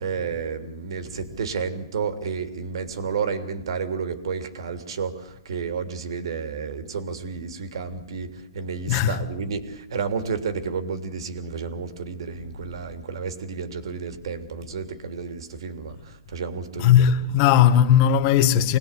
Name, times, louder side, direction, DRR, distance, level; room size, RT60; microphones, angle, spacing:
voice 1, 0.0-17.1, right 5 dB, 65° right, 3.1 m, -31 dB
voice 2, 8.9-9.2 16.8-18.8, left 9 dB, 35° left, 1.7 m, -17 dB
26.0 x 19.5 x 8.3 m
hypercardioid pair, 145°, 3 cm